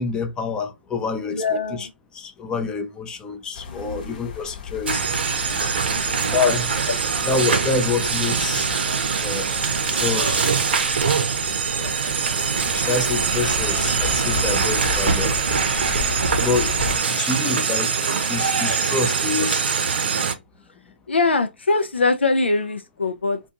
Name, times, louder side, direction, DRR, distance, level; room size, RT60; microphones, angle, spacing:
voice 1, 0.0-1.9 2.1-5.1 6.2-6.7 7.3-8.7 9.2-9.5 9.9-10.7 11.7-12.1 12.7-15.4 15.9-16.1 16.4-19.6, left 4 dB, 15° left, 0.5 m, -27 dB
voice 2, 1.3-1.9 3.7-4.2 5.9-6.4 6.9-7.0 19.4-19.5 21.1-23.4, left 3 dB, 85° left, 0.4 m, -23 dB
sound 1, 3.5-17.0, left 6 dB, 45° left, 0.9 m, -34 dB
sound 2, 4.9-20.3, right 6 dB, 65° right, 0.6 m, -23 dB
sound 3, 13.2-18.8, right 2 dB, 15° right, 0.9 m, -36 dB
2.5 x 2.2 x 2.8 m
figure-of-eight pair, 135°, 6 cm